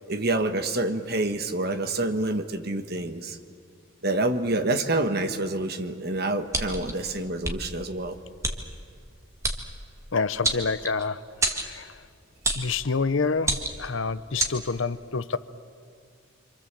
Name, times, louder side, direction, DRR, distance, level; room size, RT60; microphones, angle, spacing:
voice 1, 0.1-3.4 4.0-8.2, right 2 dB, 50° right, 8 dB, 1.4 m, -27 dB
sound 1, 6.5-6.9 7.4-7.6 8.4-8.6 9.4-9.6 10.4-11.0 11.4-11.7 12.4-12.7 13.4-13.9 14.4-14.5, right 2 dB, 15° right, 1.8 m, -27 dB
voice 2, 10.1-12.0 12.5-15.4, left 4 dB, 70° left, 14 dB, 0.8 m, -28 dB
27.5 x 26.5 x 7.6 m, 2.3 s
head